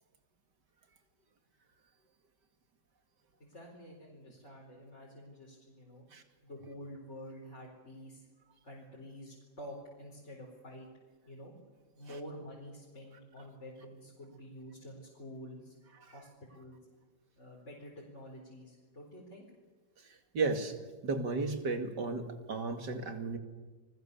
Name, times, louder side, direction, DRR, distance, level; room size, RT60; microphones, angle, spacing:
voice 1, 3.4-6.1 6.4-8.3 8.6-10.9 11.3-11.5 11.9-15.8 16.1-16.8 17.3-19.5, equal, 40° left, -4 dB, 4.9 m, -49 dB
voice 2, 20.3-20.7 21.0-23.4, right 3 dB, 75° right, 6 dB, 2.9 m, -34 dB
29.5 x 21.0 x 7.0 m, 1.3 s
omnidirectional pair, 1.9 m